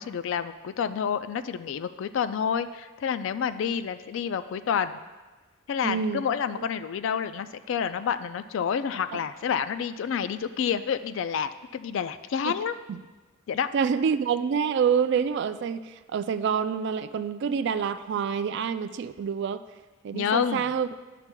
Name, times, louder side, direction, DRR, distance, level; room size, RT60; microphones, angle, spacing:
voice 1, 0.0-5.0 5.7-12.8 13.5-13.7 20.1-20.7, left 7 dB, 65° left, 12 dB, 0.3 m, -29 dB
voice 2, 5.8-6.2 9.1-9.2 12.5-12.6 13.7-19.6 20.0-20.9, right 7 dB, 55° right, 12 dB, 0.3 m, -27 dB
11.0 x 5.8 x 2.2 m, 1.2 s
head